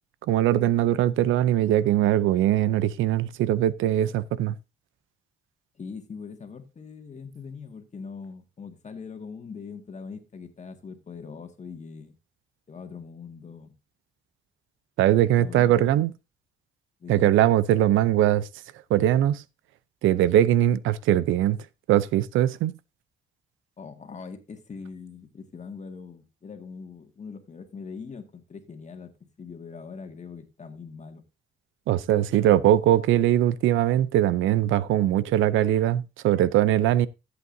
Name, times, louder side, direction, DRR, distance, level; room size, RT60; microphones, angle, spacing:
voice 1, 0.3-4.6 15.0-16.1 17.1-18.5 18.9-19.4 20.0-22.7 31.9-37.1, right 12 dB, 85° right, 0.6 m, -21 dB
voice 2, 5.8-12.1 12.7-13.7 15.3-16.0 17.0-17.3 23.8-31.2, left 5 dB, 35° left, 1.9 m, -41 dB
14.0 x 8.1 x 2.7 m
cardioid pair, 90°, 20 cm